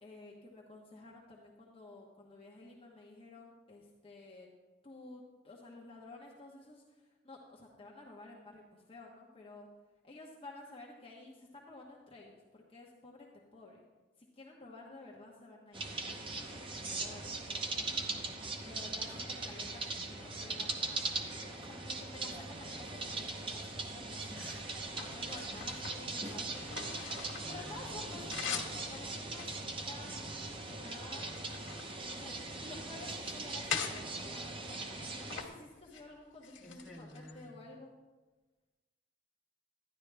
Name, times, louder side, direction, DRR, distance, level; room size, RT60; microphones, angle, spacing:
voice 1, 0.0-4.5 4.8-9.7 10.0-13.8 14.2-16.2 16.5-18.0 18.6-24.4 24.9-30.1 30.7-31.4 32.1-37.9, left 2 dB, 30° left, -2 dB, 1.1 m, -52 dB
sound 1, 15.7-35.4, right 3 dB, 25° right, 0.8 m, -40 dB
sound 2, 22.6-23.5 24.1-27.6 27.9-28.8 29.3-30.6 31.0-32.7 33.1-34.0 34.6-35.5 35.8-36.0 36.4-37.4, left 7 dB, 80° left, 1.3 m, -43 dB
voice 2, 24.3-24.7 25.4-25.7 27.4-28.6 32.6-32.8 36.6-37.5, left 1 dB, ahead, -3 dB, 1.8 m, -52 dB
12.0 x 10.5 x 3.4 m, 1.2 s
head